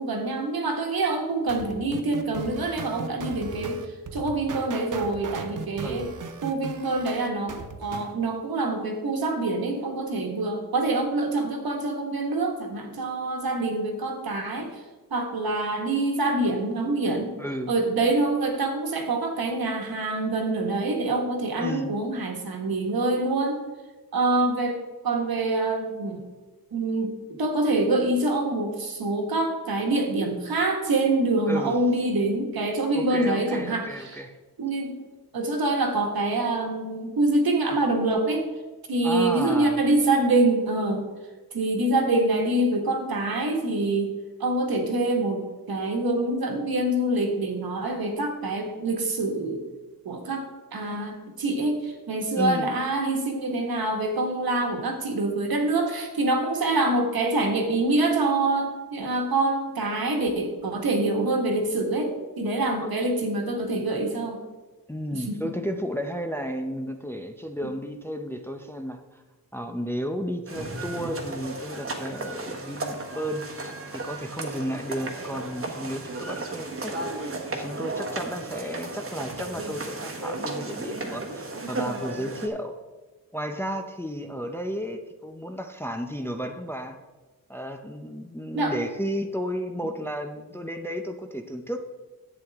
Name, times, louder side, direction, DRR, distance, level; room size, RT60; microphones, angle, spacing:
voice 1, 0.0-3.8 4.1-6.1 6.4-14.8 15.1-17.3 17.7-23.6 24.1-26.2 26.7-34.2 34.6-34.9 35.3-38.5 38.9-41.1 41.5-44.1 44.4-49.6 50.0-64.4 65.1-65.3 67.6-67.7 88.5-88.8, right 2 dB, 70° right, 3 dB, 1.6 m, -25 dB
sound 1, 1.5-8.1, right 5 dB, 55° right, 0.8 m, -37 dB
voice 2, 5.8-6.1 17.4-17.7 21.6-22.0 31.5-31.8 32.9-34.4 39.0-39.8 52.3-52.7 62.8-62.9 64.9-69.2 69.5-76.9 77.2-82.7 83.3-87.0 87.5-91.8, equal, 5° left, 5 dB, 0.5 m, -33 dB
sound 2, 70.5-82.5, right 2 dB, 35° right, 1.2 m, -34 dB
11.0 x 8.3 x 3.5 m, 1.2 s
wide cardioid pair, 155°, 37 cm